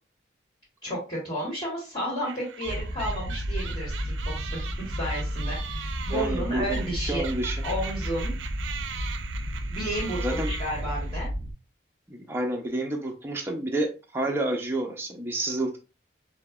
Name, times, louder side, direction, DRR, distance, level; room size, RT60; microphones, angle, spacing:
voice 1, 0.8-7.2 7.6-8.3 9.7-11.3, equal, 20° left, -8 dB, 1.5 m, -32 dB
sound 1, 2.2-11.3, right 7 dB, 85° right, 0.4 m, -40 dB
sound 2, 2.6-11.5, equal, 40° left, 0.7 m, -32 dB
voice 2, 6.1-7.6 10.2-10.5 12.1-15.8, right 1 dB, 15° right, 1 dB, 0.4 m, -29 dB
5.1 x 2.1 x 2.2 m, 0.31 s
head